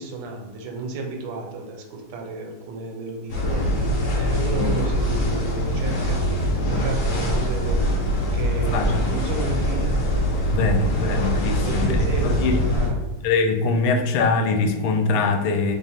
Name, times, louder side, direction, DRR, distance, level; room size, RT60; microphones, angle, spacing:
voice 1, 0.0-7.8 8.2-10.0 10.6-13.1, right 2 dB, 75° right, 3 dB, 1.3 m, -33 dB
sound 1, 3.3-12.9, equal, 55° left, 0.9 m, -23 dB
voice 2, 8.5-9.1 10.5-12.6 13.2-15.8, left 3 dB, 90° left, 4 dB, 1.4 m, -23 dB
3.4 x 2.5 x 4.1 m, 1.2 s
omnidirectional pair, 2.3 m